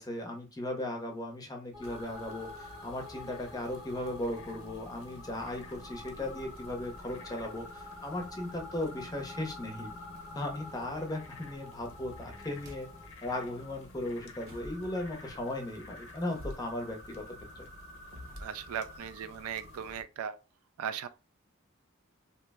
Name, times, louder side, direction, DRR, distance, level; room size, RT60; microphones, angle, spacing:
voice 1, 0.0-9.9 10.3-12.9 13.2-17.7, left 1 dB, 15° left, 0.6 m, -37 dB
sound 1, 1.7-13.1, left 2 dB, 20° right, 0.8 m, -50 dB
sound 2, 1.8-20.0, left 2 dB, 70° left, 0.7 m, -49 dB
sound 3, 12.5-13.2 13.6-18.9, equal, 65° right, 0.7 m, -50 dB
voice 2, 18.4-20.4 20.8-21.1, right 8 dB, 80° right, 0.3 m, -37 dB
2.8 x 2.0 x 3.4 m
head